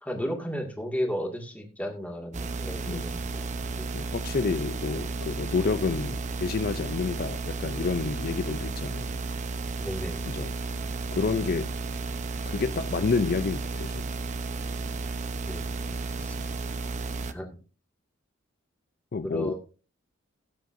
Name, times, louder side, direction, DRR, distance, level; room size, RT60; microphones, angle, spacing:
voice 1, 0.0-3.9 9.8-10.3 15.5-15.7 16.2-16.5 17.3-17.5 19.2-19.6, equal, 10° left, 2.1 m, -34 dB
sound 1, 2.3-17.3, right 3 dB, 35° right, 0.7 m, -33 dB
voice 2, 3.9-9.1 10.3-10.5 11.1-11.7 12.4-14.0 19.1-19.6, left 4 dB, 50° left, 0.4 m, -29 dB
17.5 x 7.7 x 2.6 m
head